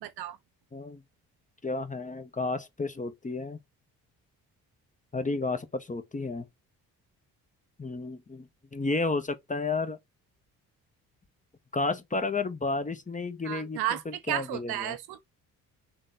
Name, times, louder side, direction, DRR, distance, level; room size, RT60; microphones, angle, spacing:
voice 1, 0.0-0.4 13.4-15.2, right 12 dB, 60° right, 0.7 m, -33 dB
voice 2, 0.7-1.0 1.6-3.6 5.1-6.4 7.8-8.5 8.7-10.0 11.7-15.0, left 3 dB, 20° left, 0.8 m, -32 dB
3.6 x 3.2 x 4.0 m
hypercardioid pair, 50°, 43 cm